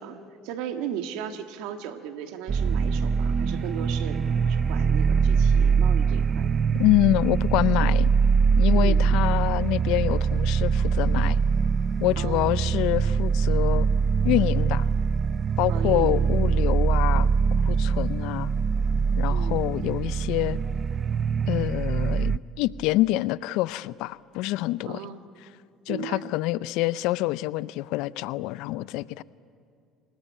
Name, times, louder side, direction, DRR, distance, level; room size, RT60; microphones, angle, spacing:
voice 1, 0.0-6.5 8.7-9.0 12.2-12.5 15.7-16.2 19.3-19.6 24.8-25.2 25.9-26.3, right 9 dB, 80° right, 7 dB, 1.7 m, -36 dB
sound 1, 2.5-22.4, right 6 dB, 40° right, 0.6 m, -23 dB
voice 2, 6.8-8.1 8.6-11.4 12.0-13.9 14.2-14.9 15.6-17.3 17.6-18.5 19.2-20.6 21.5-25.0 25.9-29.2, left 17 dB, 75° left, 19 dB, 0.5 m, -26 dB
29.0 x 20.0 x 8.4 m, 2.3 s
supercardioid pair, 80°, 0 cm